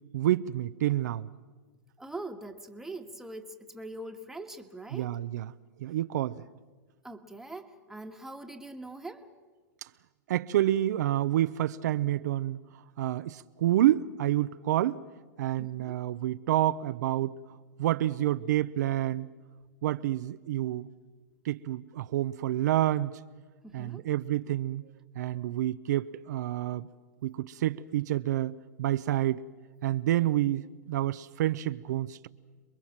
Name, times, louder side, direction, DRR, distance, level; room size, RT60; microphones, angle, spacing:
voice 1, 0.1-1.3 4.9-5.5 5.8-6.5 9.8-9.9 10.3-12.6 13.0-15.0 15.4-17.4 17.8-19.3 19.8-20.9 21.4-23.1 23.7-24.8 25.2-26.9 27.2-29.4 29.8-32.3, right 13 dB, 75° right, 0.7 m, -28 dB
voice 2, 2.0-5.1 7.0-9.3 15.6-16.0 23.6-24.0, right 2 dB, 5° right, 1.6 m, -42 dB
27.5 x 22.0 x 7.3 m
hypercardioid pair, 125°, 10 cm